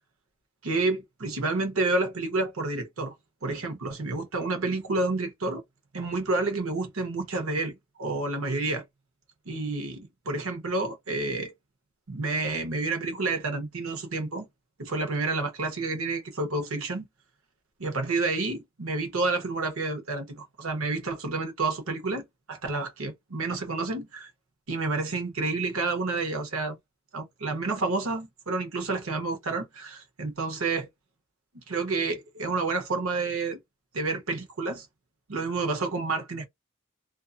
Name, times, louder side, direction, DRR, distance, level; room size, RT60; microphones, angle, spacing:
voice 1, 0.6-3.1 3.4-5.6 5.9-8.8 9.5-11.5 12.1-14.5 14.8-17.1 17.8-24.3 24.7-26.8 27.1-30.9 31.5-33.6 33.9-34.9 35.3-36.5, right 3 dB, 90° right, 1.0 m, -29 dB
2.6 x 2.4 x 2.5 m
head